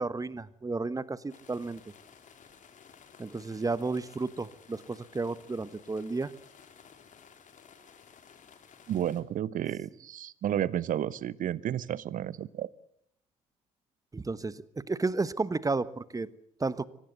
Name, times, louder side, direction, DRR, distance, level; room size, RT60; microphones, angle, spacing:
voice 1, 0.0-1.8 3.2-6.3 14.1-16.3 16.6-16.9, right 3 dB, 20° right, 17 dB, 1.2 m, -32 dB
sound 1, 1.3-9.2, left 7 dB, 45° left, 3.5 m, -55 dB
voice 2, 8.9-12.7, right 11 dB, 50° right, 21 dB, 0.9 m, -32 dB
24.0 x 19.0 x 8.3 m, 0.71 s
figure-of-eight pair, 50°, 17 cm